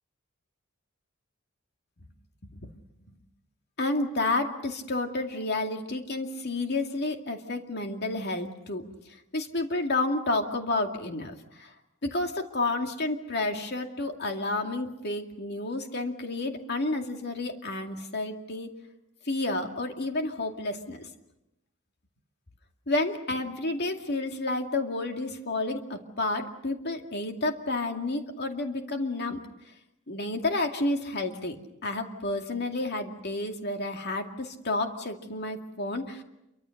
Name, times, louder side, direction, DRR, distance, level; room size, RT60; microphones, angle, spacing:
voice 1, 3.8-8.8 9.3-11.7 12.0-18.7 19.3-21.1 22.9-29.4 30.1-31.6 31.8-36.2, left 2 dB, 55° left, 4 dB, 2.4 m, -30 dB
28.0 x 24.0 x 6.5 m, 0.89 s
head